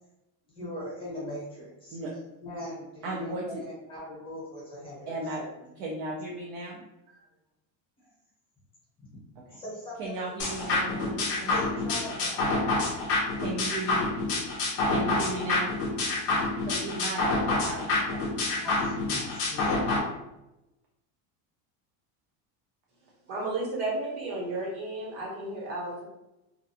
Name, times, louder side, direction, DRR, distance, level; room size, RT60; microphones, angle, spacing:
voice 1, 0.5-2.0 2.4-5.7 9.5-10.0 10.3-10.4 11.4-12.7 18.6-19.9, left 1 dB, 10° left, -8 dB, 0.8 m, -40 dB
voice 2, 3.0-3.6 5.1-6.8 7.1-7.2 9.5-9.6 10.0-11.5 13.4-14.1 14.9-15.7 16.6-18.5, right 2 dB, 45° right, -3 dB, 0.4 m, -35 dB
sound 1, 10.4-20.0, left 2 dB, 35° left, 0.5 m, -28 dB
voice 3, 23.3-26.0, right 2 dB, 75° right, -4 dB, 1.3 m, -33 dB
2.4 x 2.1 x 2.7 m, 0.93 s
cardioid pair, 180°, 42 cm